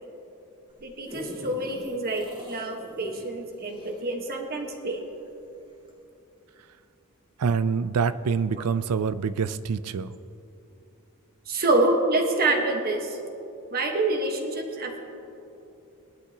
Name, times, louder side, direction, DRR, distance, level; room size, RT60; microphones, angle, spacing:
sound 1, 0.7-5.4 5.9-6.0, equal, 25° right, 2.1 m, -43 dB
voice 1, 0.8-5.0 11.5-13.2 13.7-15.0, right 2 dB, 45° right, 3 dB, 1.3 m, -26 dB
voice 2, 7.4-10.1, right 5 dB, 85° right, 15 dB, 0.4 m, -26 dB
19.5 x 12.0 x 2.9 m, 2.8 s
head